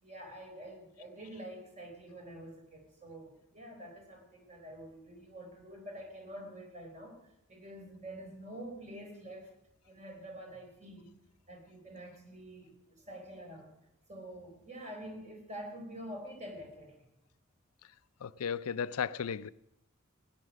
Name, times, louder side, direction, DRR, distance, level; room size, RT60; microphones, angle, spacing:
voice 1, 0.0-7.2 7.5-9.5 9.8-11.1 11.5-13.7 14.1-17.0, right 1 dB, 35° right, 4.1 m, -47 dB
voice 2, 18.2-19.5, left 7 dB, 90° left, 0.5 m, -35 dB
17.5 x 9.9 x 6.3 m
head